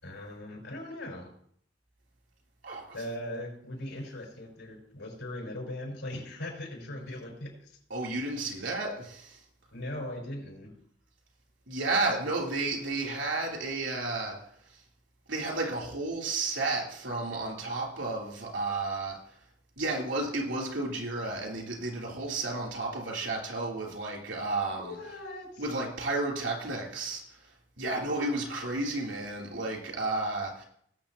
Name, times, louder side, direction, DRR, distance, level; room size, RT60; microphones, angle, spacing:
voice 1, 0.0-1.3 2.9-7.8 9.7-10.7 24.7-25.6, left 1 dB, 90° left, -1 dB, 5.2 m, -39 dB
voice 2, 7.9-9.4 11.7-14.3 15.3-19.2 19.8-24.9 25.6-27.4 27.8-30.6, right 2 dB, 90° right, -1 dB, 3.3 m, -32 dB
19.0 x 7.6 x 2.9 m, 0.65 s
head